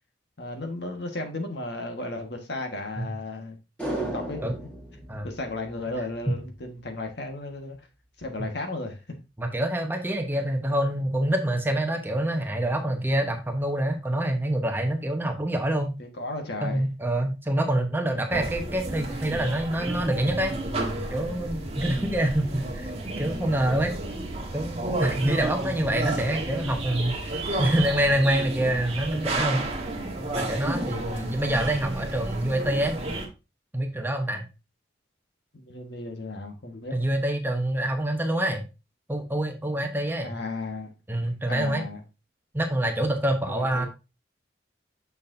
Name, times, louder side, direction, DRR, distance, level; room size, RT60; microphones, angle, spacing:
voice 1, 0.4-3.6 4.0-4.4 5.2-7.8 8.2-9.0 10.3-10.4 16.0-16.9 21.9-22.2 31.0-31.4 35.5-37.0 40.2-40.9 41.5-42.0 43.5-43.9, left 2 dB, 65° left, 1.5 m, -35 dB
sound 1, 3.8-6.3 6.6-6.7, right 1 dB, 5° left, 2.0 m, -35 dB
voice 2, 9.4-15.9 16.6-20.5 21.1-22.5 22.7-23.9 24.5-29.7 30.3-33.0 33.7-34.4 36.9-38.7 39.1-40.3 41.1-41.8 42.5-43.9, right 1 dB, 10° right, 1.0 m, -26 dB
sound 2, 18.3-33.3, right 2 dB, 35° right, 1.4 m, -32 dB
6.9 x 6.5 x 2.7 m
head